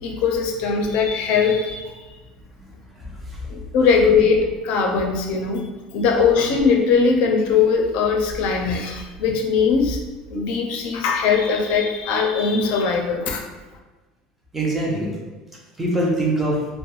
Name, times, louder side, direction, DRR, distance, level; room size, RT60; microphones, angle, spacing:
voice 1, 0.0-2.0 3.5-10.0 10.3-13.4, left 5 dB, 65° left, 2 dB, 0.4 m, -20 dB
voice 2, 2.9-3.5 14.5-15.1 15.8-16.6, right 1 dB, 10° right, -3 dB, 0.5 m, -23 dB
2.9 x 2.1 x 2.3 m, 1.2 s
cardioid pair, 160°, 2 cm